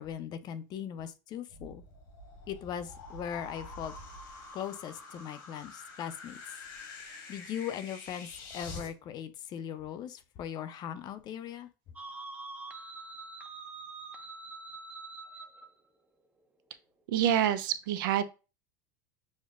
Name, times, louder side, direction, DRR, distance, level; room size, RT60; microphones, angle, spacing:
voice 1, 0.0-1.8 2.5-3.9 4.5-6.6 7.0-11.7, left 9 dB, 40° left, 0.5 m, -39 dB
sound 1, 1.5-8.9, left 3 dB, 80° left, 1.3 m, -46 dB
sound 2, 12.0-15.7, right 3 dB, 15° right, 0.5 m, -44 dB
voice 2, 17.1-18.2, right 10 dB, 85° right, 0.4 m, -27 dB
6.3 x 2.1 x 2.4 m
supercardioid pair, 120°, 11 cm